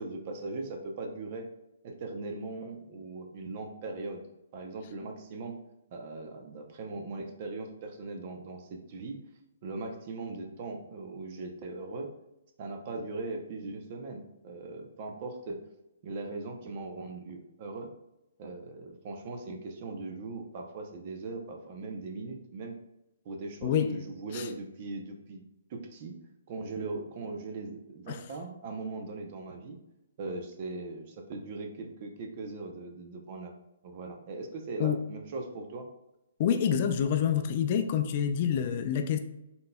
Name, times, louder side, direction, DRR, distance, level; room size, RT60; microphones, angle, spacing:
voice 1, 0.0-1.5 1.8-4.3 4.5-5.5 5.9-9.2 9.6-12.1 12.6-15.6 16.0-17.9 18.4-22.7 23.2-25.4 25.7-26.2 26.5-29.8 30.2-33.5 33.8-35.9, right 3 dB, 40° right, 0.6 m, -39 dB
voice 2, 23.6-23.9 24.3-24.5 28.1-28.2 34.8-35.0 36.4-39.2, left 8 dB, 40° left, 0.3 m, -27 dB
3.8 x 3.8 x 2.2 m
hypercardioid pair, 145°, 0 cm